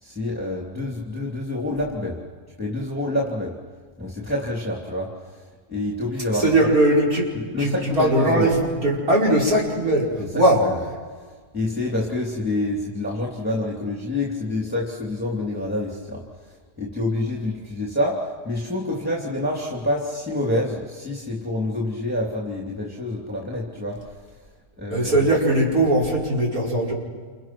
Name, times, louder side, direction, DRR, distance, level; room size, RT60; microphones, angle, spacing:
voice 1, 0.0-2.2 2.6-3.6 4.0-6.7 7.5-8.5 10.2-10.8 11.5-24.2 24.8-25.3, left 1 dB, 5° right, -2 dB, 3.0 m, -27 dB
voice 2, 6.4-7.3 7.6-10.1 10.3-10.6 24.9-26.9, right 1 dB, 65° right, -3 dB, 5.8 m, -19 dB
29.0 x 29.0 x 6.2 m, 1.5 s
omnidirectional pair, 1.6 m